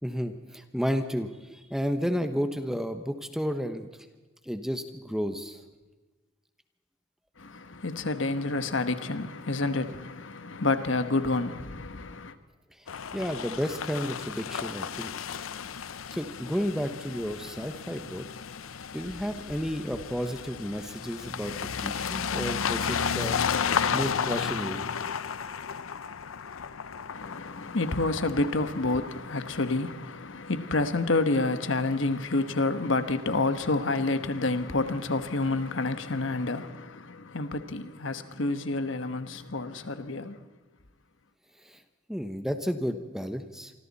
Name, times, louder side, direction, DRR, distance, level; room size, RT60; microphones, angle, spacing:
voice 1, 0.0-3.9 4.4-5.6 13.1-15.1 16.1-18.2 18.9-23.4 23.9-24.9 41.6-41.8 42.1-43.7, equal, ahead, 1.1 m, -32 dB
voice 2, 7.4-12.3 27.1-40.5, left 2 dB, 70° left, 1.2 m, -29 dB
sound 1, 12.9-30.5, left 7 dB, 90° left, 0.7 m, -33 dB
27.5 x 24.5 x 4.2 m
head